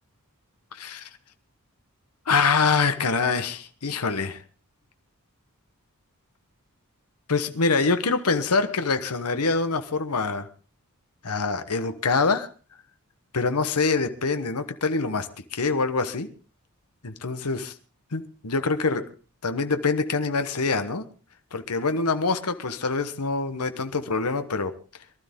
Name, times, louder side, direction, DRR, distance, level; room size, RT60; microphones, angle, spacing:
voice 1, 0.7-1.1 2.3-4.4 7.3-10.5 11.2-12.5 13.3-16.3 17.0-17.6 18.1-19.1 19.4-21.0 21.5-24.7, left 4 dB, 85° left, 9 dB, 1.2 m, -25 dB
22.5 x 13.0 x 3.6 m, 0.35 s
head